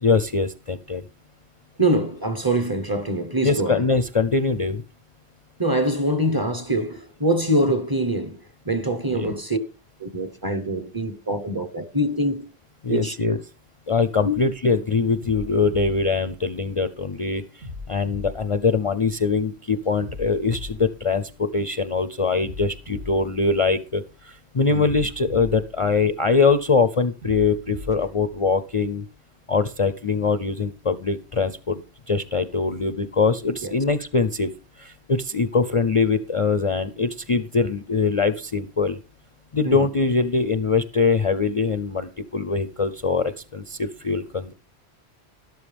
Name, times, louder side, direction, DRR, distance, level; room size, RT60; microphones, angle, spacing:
voice 1, 0.0-1.1 3.4-4.8 9.1-9.3 12.8-13.4 13.9-29.0 29.5-34.5 34.8-39.0 39.5-44.5, left 4 dB, 40° left, 0.5 m, -23 dB
voice 2, 1.8-3.9 5.6-9.6 10.0-12.5 12.9-13.1 14.2-14.4 24.7-24.8 33.6-33.7 39.6-39.9, right 1 dB, 20° right, 1.0 m, -24 dB
sound 1, 15.2-17.0 17.6-19.4 20.0-21.8 22.4-24.2 24.8-26.6 27.2-29.0, left 3 dB, 80° right, 3.4 m, -39 dB
12.5 x 12.0 x 3.4 m
omnidirectional pair, 1.1 m